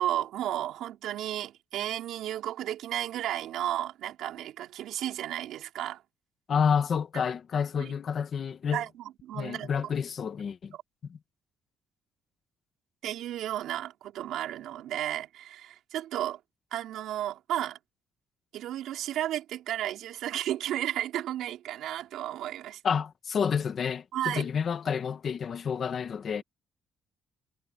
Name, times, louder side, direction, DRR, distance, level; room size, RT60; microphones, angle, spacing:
voice 1, 0.0-6.0 7.8-7.9 8.7-9.7 13.0-16.4 16.7-17.8 18.5-22.8 24.1-24.5, right 12 dB, 75° right, 4.6 m, -33 dB
voice 2, 6.5-8.8 9.3-10.7 11.1-11.2 22.8-26.4, left 7 dB, 35° left, 1.4 m, -29 dB
cardioid pair, 175°, 0 cm